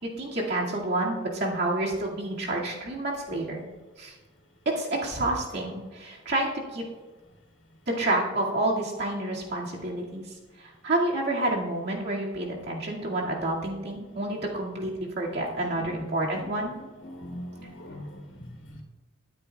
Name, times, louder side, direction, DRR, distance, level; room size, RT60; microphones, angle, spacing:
voice 1, 0.0-3.6 4.0-4.1 4.7-6.8 7.9-10.2 10.6-16.7, right 1 dB, 55° right, -3 dB, 2.2 m, -29 dB
voice 2, 17.0-18.8, equal, 65° left, -1 dB, 2.9 m, -41 dB
21.0 x 9.9 x 2.4 m, 1.3 s
head